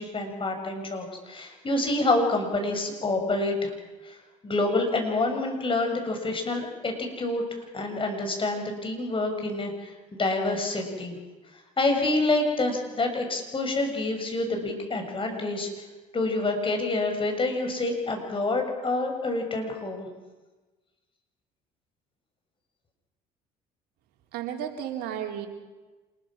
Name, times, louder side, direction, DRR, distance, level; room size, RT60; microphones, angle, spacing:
voice 1, 0.0-3.7 4.0-4.2 4.4-7.4 7.7-11.2 11.5-15.7 16.1-20.1, left 2 dB, 30° left, 4 dB, 6.6 m, -27 dB
voice 2, 24.3-25.5, right 10 dB, 65° right, 2 dB, 4.0 m, -33 dB
27.5 x 21.0 x 6.3 m, 1.2 s
hypercardioid pair, 70°, 18 cm